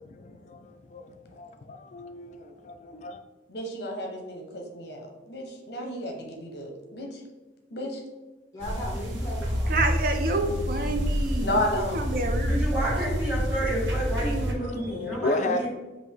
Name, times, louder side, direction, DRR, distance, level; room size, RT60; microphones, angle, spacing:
voice 1, 0.0-3.2 14.6-15.7, left 2 dB, 40° left, 0.3 m, -33 dB
voice 2, 3.5-7.2 7.7-8.0 11.4-12.0, left 1 dB, 60° left, 0.8 m, -32 dB
voice 3, 8.5-9.8 10.3-11.1, equal, 20° left, 1.4 m, -39 dB
sound 1, 8.6-14.5, equal, 90° right, 1.0 m, -28 dB
voice 4, 9.7-11.6 11.9-13.1 13.6-13.8 14.2-14.4, right 2 dB, 50° right, 0.5 m, -29 dB
voice 5, 12.4-15.7, right 1 dB, 10° right, 1.3 m, -30 dB
5.2 x 2.6 x 3.4 m
head